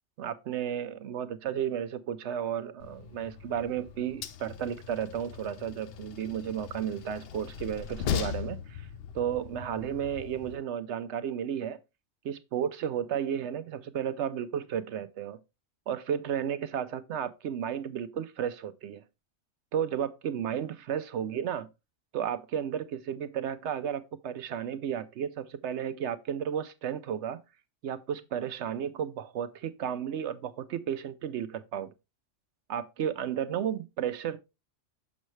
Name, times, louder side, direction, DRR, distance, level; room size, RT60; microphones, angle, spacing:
voice 1, 0.2-8.9 9.1-11.8 12.2-15.4 15.9-19.0 19.7-21.7 22.1-27.4 27.8-31.9 32.7-34.4, right 9 dB, 65° right, 0.8 m, -33 dB
Train, 2.8-10.6, left 9 dB, 60° left, 0.7 m, -39 dB
6.4 x 6.3 x 3.1 m
omnidirectional pair, 1.3 m